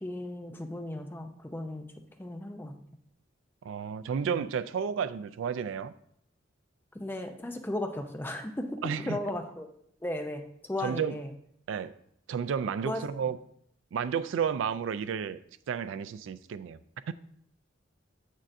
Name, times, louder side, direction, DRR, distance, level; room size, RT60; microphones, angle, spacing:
voice 1, 0.0-1.9 2.2-2.8 4.3-4.4 6.9-9.7 10.0-11.3 12.9-13.0, left 1 dB, 10° left, 5 dB, 0.5 m, -36 dB
voice 2, 3.6-5.9 8.8-9.2 10.8-11.2 11.7-12.0 12.3-13.4 13.9-15.4 15.7-16.8 17.1-17.2, right 7 dB, 75° right, 14 dB, 0.3 m, -32 dB
7.2 x 6.4 x 2.6 m, 0.69 s
head